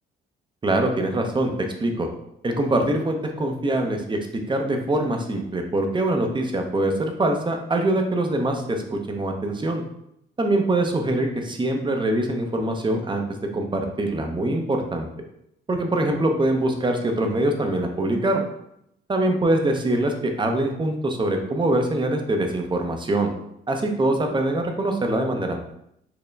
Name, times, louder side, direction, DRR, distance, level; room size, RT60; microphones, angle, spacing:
voice 1, 0.6-2.1 2.4-4.2 4.5-9.8 10.4-13.2 13.5-15.1 15.7-18.4 19.1-23.3 23.7-25.6, right 1 dB, 25° right, 4 dB, 0.6 m, -23 dB
4.3 x 2.1 x 3.3 m, 0.78 s
cardioid pair, 90°, 20 cm